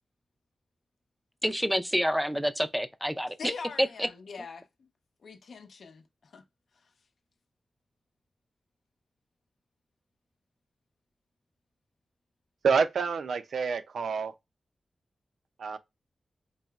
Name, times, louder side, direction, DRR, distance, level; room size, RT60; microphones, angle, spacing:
voice 1, 1.4-3.5 3.8-4.1, equal, ahead, 0.4 m, -28 dB
voice 2, 3.4-4.9 5.2-6.4, left 4 dB, 75° left, 0.6 m, -43 dB
voice 3, 12.6-14.3 15.6-15.8, right 5 dB, 80° right, 0.4 m, -27 dB
4.1 x 2.9 x 2.3 m
wide cardioid pair, 140°, 0 cm